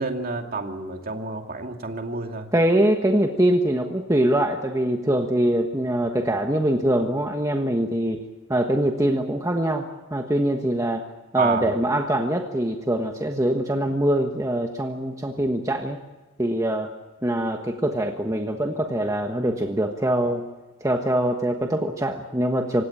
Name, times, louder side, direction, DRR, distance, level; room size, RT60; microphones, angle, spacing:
voice 1, 0.0-2.5 11.4-11.7, right 4 dB, 45° right, 4 dB, 2.5 m, -29 dB
voice 2, 2.5-8.2 8.5-11.0 11.3-16.0 16.4-16.9 17.2-20.4 20.8-22.8, right 1 dB, 15° right, 3 dB, 1.3 m, -23 dB
27.5 x 17.0 x 8.6 m, 1.2 s
head